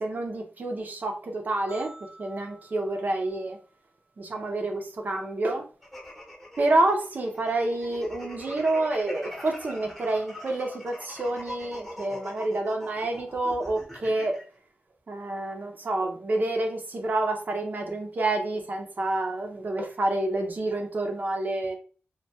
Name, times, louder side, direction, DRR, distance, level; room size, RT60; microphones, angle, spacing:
voice 1, 0.0-1.9 2.2-3.6 4.2-5.6 6.6-14.4 15.1-21.8, right 2 dB, 45° right, 0.6 m, -28 dB
sound 1, 1.7-4.0, right 2 dB, 65° left, 0.7 m, -51 dB
sound 2, 5.8-14.4, left 1 dB, 5° left, 0.8 m, -42 dB
2.2 x 2.2 x 2.7 m
wide cardioid pair, 95°, 4 cm